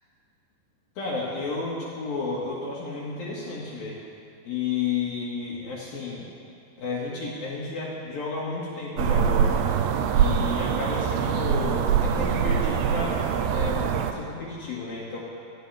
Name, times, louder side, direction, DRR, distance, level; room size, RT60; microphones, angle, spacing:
voice 1, 1.0-4.0 4.4-6.3 6.8-9.7 10.1-15.2, left 4 dB, 55° left, -6 dB, 3.5 m, -32 dB
sound 1, 9.0-14.1, right 7 dB, 80° right, 2.6 m, -24 dB
25.5 x 16.0 x 3.5 m, 2.5 s
omnidirectional pair, 5.3 m